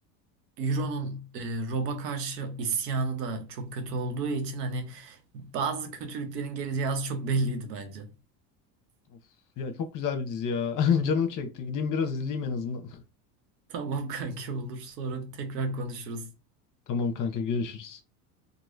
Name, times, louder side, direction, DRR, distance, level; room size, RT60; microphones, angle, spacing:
voice 1, 0.6-8.1 13.7-16.3, right 3 dB, 90° right, 0.8 m, -32 dB
voice 2, 9.6-13.0 16.9-18.0, left 6 dB, 40° left, 0.8 m, -29 dB
3.0 x 2.5 x 2.4 m
hypercardioid pair, 85°, 47 cm